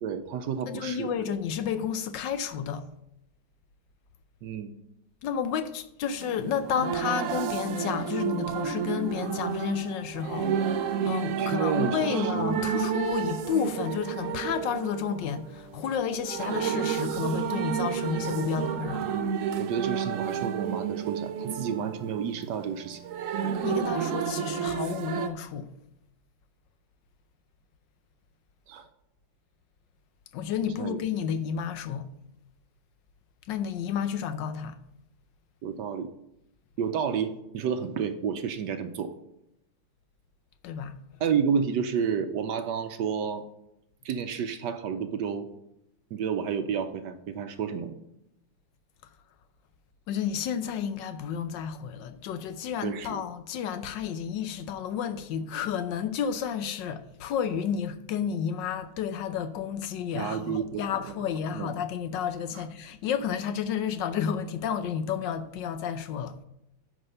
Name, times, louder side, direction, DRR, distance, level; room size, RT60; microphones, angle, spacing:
voice 1, 0.0-1.1 4.4-4.7 11.4-12.4 12.7-12.9 19.6-23.0 28.7-28.9 30.8-31.0 35.6-36.1 36.8-39.1 41.2-43.4 44.0-45.5 46.1-48.0 52.8-53.2 60.1-60.8 61.5-61.7 62.5-62.6, right 7 dB, 70° right, 1.1 m, -30 dB
voice 2, 0.7-2.9 5.2-19.1 23.6-25.7 30.3-32.1 33.5-34.8 40.6-41.0 50.1-66.4, left 8 dB, 70° left, 1.2 m, -31 dB
sound 1, 6.2-25.3, right 8 dB, 90° right, 0.6 m, -31 dB
9.9 x 4.9 x 6.6 m
omnidirectional pair, 2.2 m